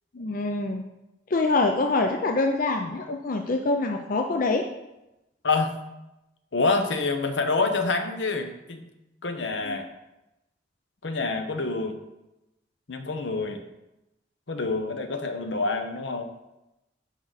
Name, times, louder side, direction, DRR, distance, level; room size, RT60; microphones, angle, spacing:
voice 1, 0.1-0.8 1.3-4.6 9.6-9.8, left 3 dB, 45° left, 4 dB, 0.5 m, -25 dB
voice 2, 6.5-8.8 9.2-9.9 11.0-11.9 12.9-13.6 14.5-16.3, left 3 dB, 75° left, 6 dB, 0.9 m, -27 dB
10.5 x 4.8 x 4.0 m, 0.95 s
head